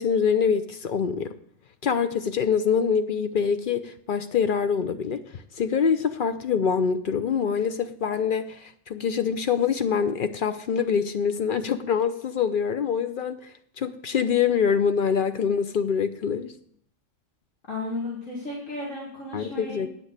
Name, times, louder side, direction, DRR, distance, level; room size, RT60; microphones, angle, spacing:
voice 1, 0.0-1.3 1.8-13.4 13.8-16.5 19.3-19.9, left 6 dB, 55° left, 10 dB, 0.6 m, -25 dB
voice 2, 17.7-19.9, left 2 dB, 75° left, -4 dB, 2.5 m, -34 dB
8.9 x 6.1 x 8.1 m, 0.64 s
omnidirectional pair, 1.4 m